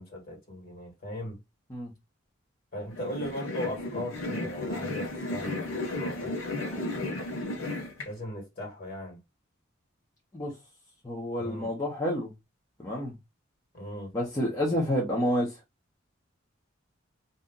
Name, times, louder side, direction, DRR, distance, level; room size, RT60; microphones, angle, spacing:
voice 1, 0.0-1.4 2.7-7.3 8.0-9.2 11.4-11.7 13.7-14.1, left 1 dB, 45° left, 1.7 m, -38 dB
sound 1, 2.9-8.1, left 2 dB, 90° left, 1.0 m, -34 dB
voice 2, 11.0-12.3 12.8-13.1 14.1-15.6, equal, 15° left, 0.8 m, -29 dB
2.7 x 2.4 x 3.7 m
head